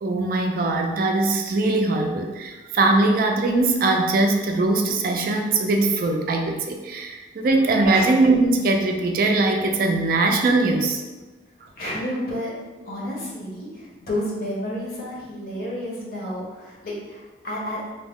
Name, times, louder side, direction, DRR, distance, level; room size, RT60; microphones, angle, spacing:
voice 1, 0.0-11.0, right 2 dB, 55° right, 3 dB, 0.3 m, -21 dB
voice 2, 11.8-12.5 12.8-17.9, left 1 dB, 55° left, -4 dB, 0.8 m, -31 dB
2.6 x 2.1 x 3.4 m, 1.2 s
head